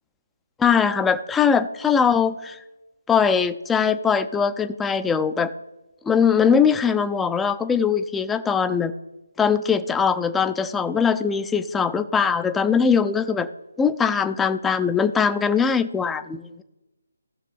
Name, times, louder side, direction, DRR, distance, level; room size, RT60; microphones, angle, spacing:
voice 1, 0.6-2.6 3.1-5.5 6.0-8.9 9.4-13.5 13.8-16.6, left 6 dB, 5° left, 11 dB, 0.4 m, -21 dB
17.0 x 6.6 x 3.4 m, 1.0 s
figure-of-eight pair, 150°, 0 cm